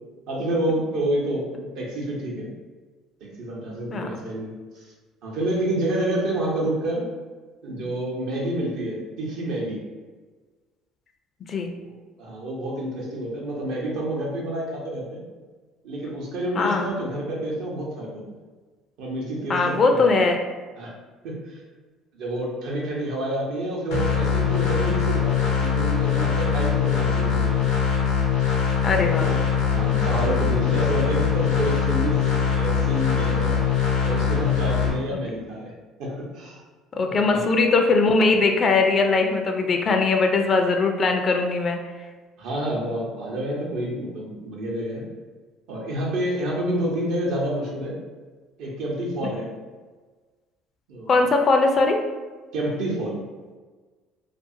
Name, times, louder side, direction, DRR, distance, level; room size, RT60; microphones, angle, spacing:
voice 1, 0.3-1.5 1.8-2.5 3.2-4.5 5.2-7.1 7.6-9.8 11.8-15.2 15.8-18.3 19.0-20.3 20.8-20.9 21.2-21.6 22.1-27.6 28.9-32.2 32.5-33.6 34.0-35.7 36.0-36.6 37.0-37.4 42.4-45.1 45.7-48.0 48.6-49.5 50.9-51.2 52.5-53.2, right 1 dB, 75° right, -3 dB, 0.8 m, -28 dB
voice 2, 16.5-16.9 19.5-20.4 28.8-29.3 36.9-41.8 51.1-52.0, left 3 dB, 45° left, 4 dB, 0.4 m, -20 dB
sound 1, 23.9-34.9, left 7 dB, 90° left, 0.7 m, -22 dB
2.5 x 2.4 x 2.6 m, 1.4 s
supercardioid pair, 70°, 0 cm